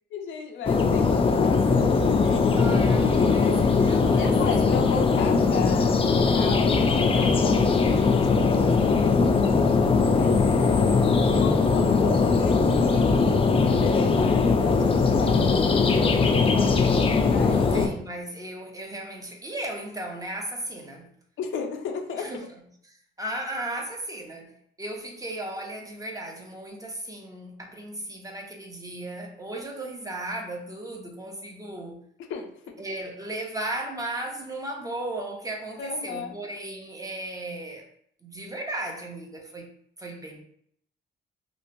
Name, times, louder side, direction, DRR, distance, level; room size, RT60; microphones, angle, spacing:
voice 1, 0.1-2.8 3.2-3.7 4.0-9.3 10.1-15.7 16.1-16.9 17.2-17.6 21.4-22.3 32.3-32.8 35.8-36.4, left 6 dB, 75° left, 4 dB, 0.5 m, -35 dB
sound 1, 0.7-17.9, left 4 dB, 30° left, 0.4 m, -20 dB
voice 2, 2.6-4.3 4.6-4.8 17.4-21.1 22.2-22.4 22.9-24.5 24.8-32.0 32.8-37.8 38.2-39.7 40.0-40.4, right 1 dB, 15° right, 1 dB, 0.6 m, -36 dB
3.0 x 2.4 x 2.6 m, 0.66 s
cardioid pair, 90°, 20 cm